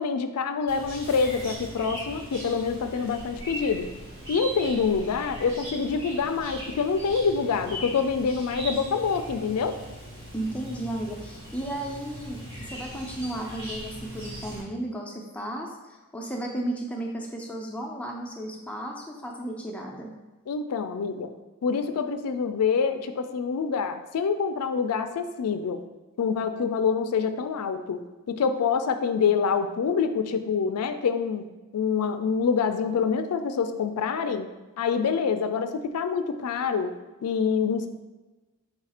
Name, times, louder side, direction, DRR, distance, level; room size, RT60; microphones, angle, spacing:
voice 1, 0.0-3.9 4.3-9.8 20.5-21.3 21.6-25.8 26.2-28.0 28.3-31.4 31.7-34.5 34.8-36.9 37.2-37.9, left 5 dB, 85° left, 9 dB, 0.4 m, -26 dB
Chirp tweet, 0.7-14.6, equal, 55° right, 1.5 m, -40 dB
voice 2, 10.3-15.8 16.1-20.1, right 1 dB, 5° left, -1 dB, 0.5 m, -34 dB
4.7 x 2.4 x 4.2 m, 1.2 s
head